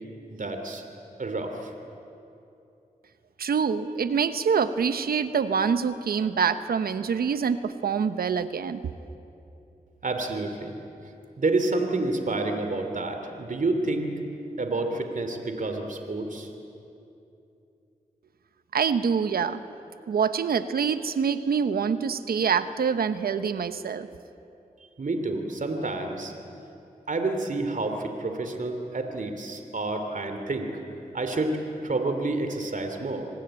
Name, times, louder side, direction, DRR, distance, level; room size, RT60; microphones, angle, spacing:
voice 1, 0.3-0.8 1.2-1.7 10.0-10.7 11.4-14.2 14.6-16.5 25.0-26.3 27.1-30.7 31.1-33.3, right 2 dB, 60° right, 6 dB, 2.9 m, -29 dB
voice 2, 3.4-8.9 18.7-19.6 20.1-24.1, right 6 dB, 85° right, 11 dB, 1.0 m, -25 dB
26.5 x 19.5 x 8.9 m, 2.8 s
cardioid pair, 40°, 15 cm